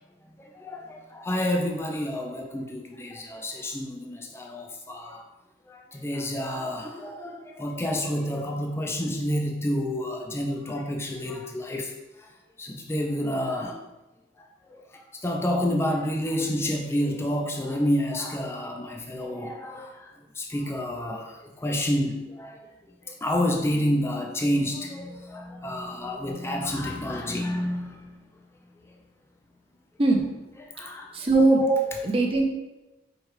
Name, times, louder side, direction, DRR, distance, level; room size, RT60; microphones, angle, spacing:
voice 1, 0.4-5.2 5.7-11.9 12.6-13.8 14.7-14.8 15.2-22.6 23.2-28.1 30.6-31.1 31.6-32.0, equal, 15° left, 1 dB, 0.4 m, -29 dB
voice 2, 31.1-31.6 32.0-32.4, right 2 dB, 30° right, 1 dB, 0.6 m, -20 dB
4.6 x 2.3 x 4.7 m, 1.0 s
head